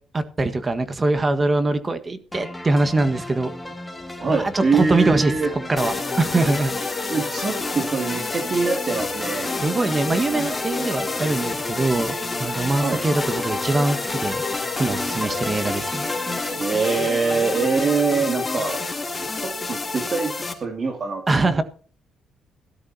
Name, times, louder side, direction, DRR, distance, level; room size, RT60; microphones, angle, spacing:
voice 1, 0.1-3.5 4.2-5.3 5.7-7.1 9.6-14.4 14.8-16.1 21.3-21.6, right 2 dB, 25° right, 10 dB, 1.6 m, -23 dB
sound 1, 2.3-16.6, left 2 dB, 5° left, 2.1 m, -33 dB
voice 2, 4.2-5.5 7.1-9.5 12.7-13.0 16.5-18.8 19.3-21.6, right 4 dB, 45° right, 4 dB, 2.4 m, -24 dB
sound 2, 5.8-20.5, left 3 dB, 25° left, 3.1 m, -29 dB
17.0 x 12.5 x 2.8 m, 0.42 s
cardioid pair, 90°, 0 cm